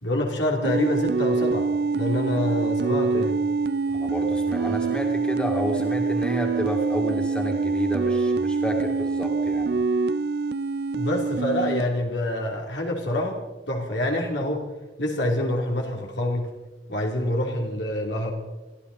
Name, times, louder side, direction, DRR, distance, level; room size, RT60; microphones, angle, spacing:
voice 1, 0.0-1.7 1.9-3.4 10.9-13.4 13.7-14.7 15.0-16.6 16.9-18.3, left 1 dB, 90° left, 0 dB, 3.2 m, -26 dB
sound 1, 0.6-11.8, right 4 dB, 60° right, 0.5 m, -25 dB
voice 2, 3.9-9.8, equal, 5° left, 1 dB, 2.3 m, -30 dB
23.5 x 14.5 x 4.2 m, 1.1 s
head